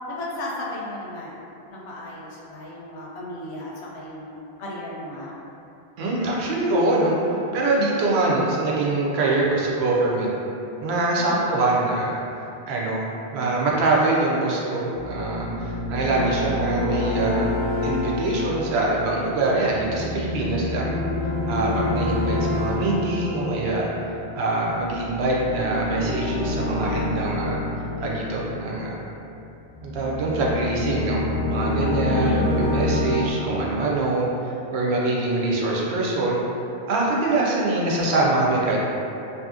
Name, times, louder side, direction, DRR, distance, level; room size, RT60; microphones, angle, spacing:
voice 1, 0.1-1.4 1.7-5.3 11.2-11.6 16.1-16.7 21.6-22.1 32.0-32.9, left 1 dB, 80° left, -5 dB, 0.9 m, -33 dB
voice 2, 6.0-7.2 7.5-10.3 10.8-12.2 12.7-13.1 13.3-17.5 17.8-21.0 21.5-23.9 24.3-27.6 28.0-29.0 29.8-31.2 31.5-32.4 32.7-34.3 34.7-36.4 36.9-38.8, right 2 dB, 80° right, -4 dB, 0.8 m, -24 dB
sound 1, 14.9-29.2 29.8-33.3, left 2 dB, 35° left, 0.6 m, -27 dB
2.7 x 2.6 x 2.4 m, 2.8 s
omnidirectional pair, 1.1 m